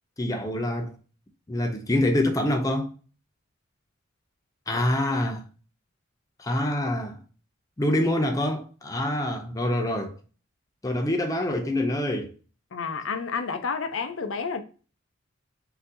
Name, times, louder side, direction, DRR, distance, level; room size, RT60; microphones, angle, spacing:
voice 1, 0.2-1.0 1.5-2.9 4.7-5.4 6.4-7.2 7.8-10.2 10.8-12.3, left 1 dB, 15° left, 0.5 m, -26 dB
voice 2, 12.7-14.6, left 5 dB, 65° left, 0.5 m, -30 dB
5.7 x 2.6 x 2.6 m
head